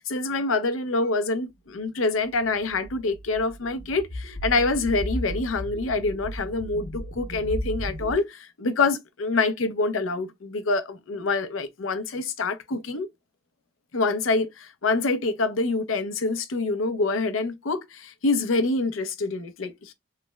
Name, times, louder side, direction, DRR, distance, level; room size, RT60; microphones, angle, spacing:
voice 1, 0.0-13.1 13.9-19.9, left 3 dB, 85° left, 0.6 m, -26 dB
sound 1, 2.4-8.1, equal, 70° left, 0.9 m, -35 dB
3.2 x 2.1 x 3.3 m
head